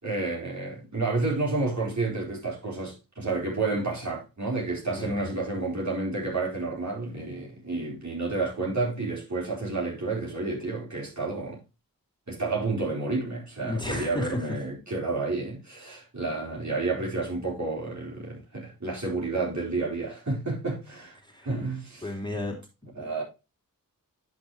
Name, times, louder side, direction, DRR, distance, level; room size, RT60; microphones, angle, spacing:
voice 1, 0.0-11.6 12.3-21.2 21.4-22.1 23.0-23.2, right 3 dB, 50° right, 4.5 m, -30 dB
voice 2, 4.9-5.3 13.6-14.5 21.2-21.5 22.0-22.6 23.0-23.2, left 2 dB, 10° left, 2.7 m, -33 dB
10.5 x 6.3 x 3.1 m
cardioid pair, 40°, 36 cm